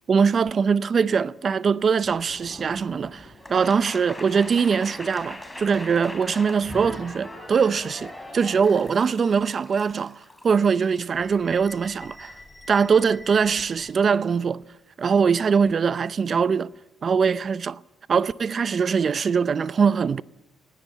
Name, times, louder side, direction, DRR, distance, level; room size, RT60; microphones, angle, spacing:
voice 1, 0.1-10.2 10.4-12.3 12.7-14.6 15.0-16.7 17.0-17.8 18.1-20.2, right 6 dB, 45° right, 0.6 m, -22 dB
sound 1, 2.1-13.9, left 1 dB, 10° left, 4.1 m, -42 dB
20.0 x 16.5 x 8.3 m
cardioid pair, 90°, 0 cm